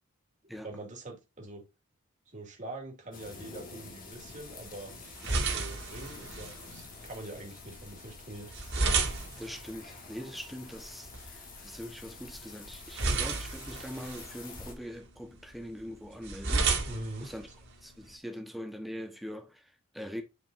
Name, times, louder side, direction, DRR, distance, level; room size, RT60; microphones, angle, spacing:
voice 1, 0.6-1.6 2.3-4.9 5.5-8.5 16.9-17.3, right 1 dB, 35° right, 2.4 m, -43 dB
sound 1, 3.1-14.7, left 4 dB, 40° left, 2.0 m, -48 dB
sound 2, 4.2-18.1, right 3 dB, 55° right, 2.5 m, -35 dB
voice 2, 9.4-16.7 17.2-17.5 17.8-20.2, equal, ahead, 1.2 m, -42 dB
10.5 x 5.2 x 2.7 m
head